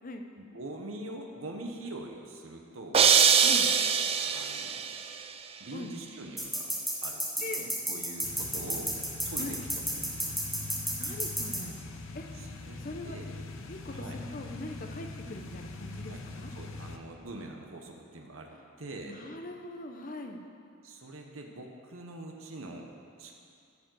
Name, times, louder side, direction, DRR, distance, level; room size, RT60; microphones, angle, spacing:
voice 1, 0.4-3.0 4.2-4.8 5.6-6.7 7.0-8.9 9.2-9.6 9.9-10.3 12.4-13.2 13.9-14.2 16.1-16.2 16.5-18.5 18.8-19.2 20.8-22.9 23.2-23.3, right 2 dB, 70° right, 2 dB, 1.0 m, -43 dB
sound 1, 2.9-5.0, right 7 dB, 25° right, 0.4 m, -23 dB
sound 2, 6.4-11.6, right 1 dB, ahead, 1.0 m, -32 dB
sound 3, 8.2-17.0, left 3 dB, 70° left, 0.8 m, -42 dB
voice 2, 11.0-11.7 12.1-12.2 12.8-13.2 13.7-16.5 18.5-18.6 19.0-20.4, left 2 dB, 40° left, 4 dB, 0.8 m, -41 dB
13.0 x 5.0 x 7.7 m, 2.4 s
head